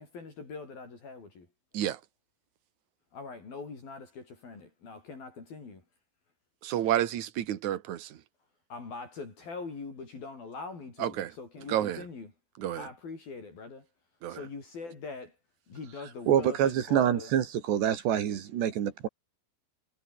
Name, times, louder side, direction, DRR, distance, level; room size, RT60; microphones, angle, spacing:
voice 1, 0.0-1.5 3.1-5.8 8.7-12.3 12.8-13.9 14.3-15.4 15.7-17.3, left 4 dB, 60° left, 8.2 m, -42 dB
voice 2, 6.6-8.2 11.0-11.3 11.7-12.0 12.6-12.9 14.2-14.4, right 11 dB, 55° right, 2.5 m, -30 dB
voice 3, 16.3-19.1, right 10 dB, 80° right, 4.6 m, -26 dB
omnidirectional pair, 4.8 m